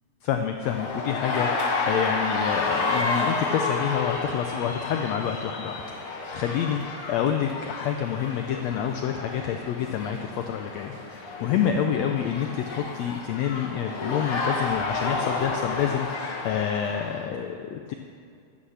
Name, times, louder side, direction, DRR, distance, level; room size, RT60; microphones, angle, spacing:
voice 1, 0.2-17.9, left 8 dB, 90° left, 5 dB, 1.5 m, -28 dB
sound 1, 0.6-17.2, left 3 dB, 55° left, 1.7 m, -31 dB
11.5 x 9.2 x 7.1 m, 2.3 s
omnidirectional pair, 3.8 m